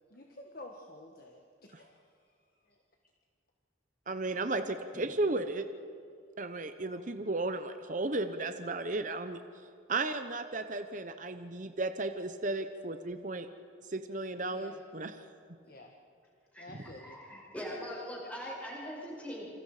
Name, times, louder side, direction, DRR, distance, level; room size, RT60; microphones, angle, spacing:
voice 1, 0.1-2.1 2.7-2.8 6.8-7.0 14.5-14.8 15.7-15.9 16.6-17.2, left 1 dB, 50° left, 1 dB, 1.7 m, -50 dB
voice 2, 4.1-5.6 6.4-9.4 9.9-13.5 13.9-15.2, right 2 dB, 40° right, 8 dB, 0.9 m, -34 dB
voice 3, 16.5-19.5, equal, 10° left, -5 dB, 7.3 m, -42 dB
28.0 x 26.0 x 5.0 m, 2.4 s
head